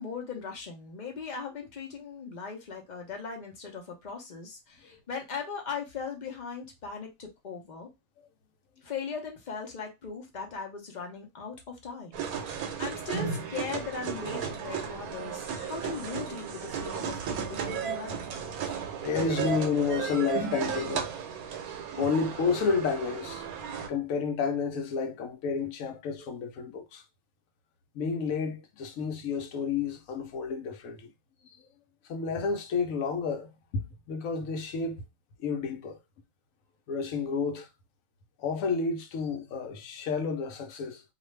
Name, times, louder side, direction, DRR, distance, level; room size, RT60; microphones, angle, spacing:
voice 1, 0.0-7.9 8.8-18.2, left 5 dB, 45° left, 0.7 m, -39 dB
sound 1, 12.1-23.9, right 7 dB, 80° right, 1.1 m, -34 dB
voice 2, 19.0-21.1 22.0-23.5 23.9-27.0 27.9-31.1 32.1-35.0 35.4-36.0 36.9-37.7 38.4-41.0, left 5 dB, 70° left, 1.0 m, -30 dB
2.5 x 2.4 x 3.1 m
omnidirectional pair, 1.5 m